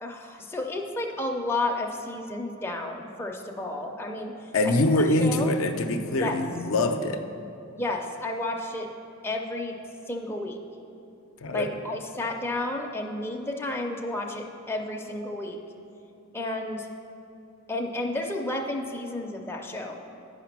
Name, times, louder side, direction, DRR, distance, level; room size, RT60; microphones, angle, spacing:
voice 1, 0.0-4.7 5.2-5.5 6.2-6.4 7.7-8.9 9.2-9.7 10.1-10.6 11.5-15.6 16.3-16.9 17.7-20.0, left 2 dB, 10° left, 1 dB, 0.5 m, -32 dB
voice 2, 4.5-7.2 11.4-11.7, left 2 dB, 65° left, 6 dB, 0.5 m, -24 dB
9.4 x 5.0 x 5.9 m, 2.7 s
head